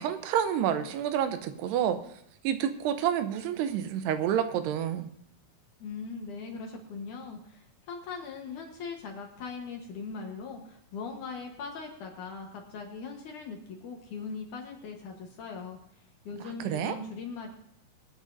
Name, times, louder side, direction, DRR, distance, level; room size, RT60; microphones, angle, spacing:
voice 1, 0.0-2.0 2.4-5.1 16.6-17.0, right 9 dB, 85° right, 9 dB, 2.8 m, -28 dB
voice 2, 5.8-15.8 16.2-17.5, left 4 dB, 65° left, 2 dB, 2.3 m, -40 dB
24.0 x 9.0 x 2.6 m, 0.72 s
omnidirectional pair, 4.7 m